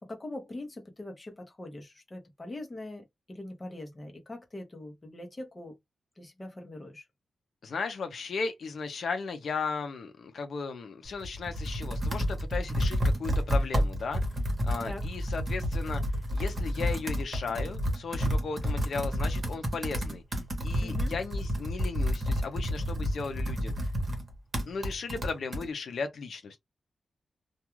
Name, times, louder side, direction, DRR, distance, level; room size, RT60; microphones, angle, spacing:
voice 1, 0.0-5.7 6.2-7.0 14.8-15.0 20.8-21.1, left 1 dB, 20° left, 0.8 m, -42 dB
voice 2, 7.6-14.2 14.7-16.0 16.3-20.2 20.6-23.9 24.7-26.6, left 4 dB, 75° left, 0.5 m, -36 dB
Computer keyboard, 11.0-25.7, equal, 35° right, 1.0 m, -30 dB
2.3 x 2.3 x 3.0 m
wide cardioid pair, 150°, 0 cm